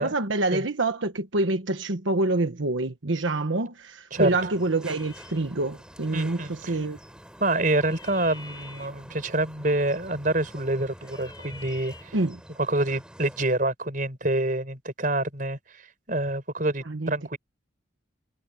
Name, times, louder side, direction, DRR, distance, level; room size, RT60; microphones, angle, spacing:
voice 1, 0.0-7.0 12.1-12.4 16.9-17.4, right 2 dB, 75° right, 1.3 m, -27 dB
sound 1, 4.1-13.4, equal, 5° right, 4.1 m, -47 dB
sound 2, 5.0-12.2, left 3 dB, 20° left, 5.6 m, -50 dB
voice 2, 6.1-6.8 7.4-12.2 12.6-17.4, right 2 dB, 45° right, 4.9 m, -27 dB
head